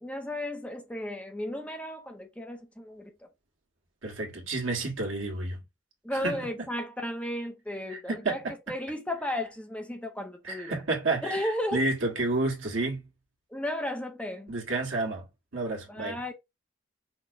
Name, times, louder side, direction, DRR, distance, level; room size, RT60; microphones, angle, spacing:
voice 1, 0.0-3.1 6.0-8.4 8.7-10.8 11.2-11.8 13.5-14.5 15.9-16.3, left 1 dB, 5° left, 0.5 m, -34 dB
voice 2, 4.0-5.6 6.1-6.5 7.9-8.6 10.4-13.1 14.5-15.3 15.5-16.2, right 2 dB, 85° right, 1.5 m, -30 dB
5.7 x 2.0 x 2.6 m
head